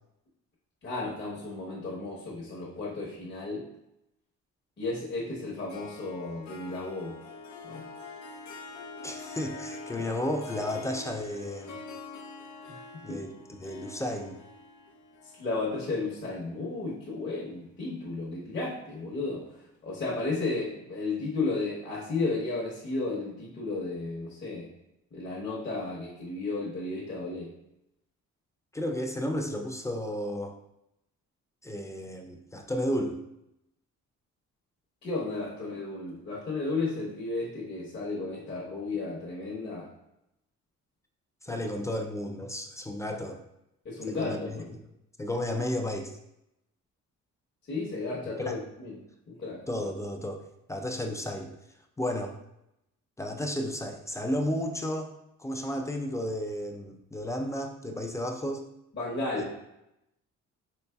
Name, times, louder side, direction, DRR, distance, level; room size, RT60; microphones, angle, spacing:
voice 1, 0.8-3.6 4.8-7.2 7.6-7.8 13.1-13.2 15.4-19.5 19.8-24.7 25.1-27.5 35.0-39.9 41.5-41.6 43.8-44.7 47.7-49.0 49.3-49.6 58.9-59.5, left 3 dB, 35° left, -6 dB, 1.0 m, -33 dB
Harp, 5.7-17.1, left 3 dB, 70° left, 0.6 m, -45 dB
voice 2, 9.0-11.8 13.0-14.4 28.7-30.6 31.6-33.2 41.4-43.4 44.1-44.8 45.2-46.1 48.4-48.6 49.7-50.4 50.7-51.5 52.0-52.3 53.2-55.1 55.4-58.7, left 1 dB, 10° left, 3 dB, 0.4 m, -33 dB
4.1 x 3.0 x 2.2 m, 0.84 s
cardioid pair, 90°, 30 cm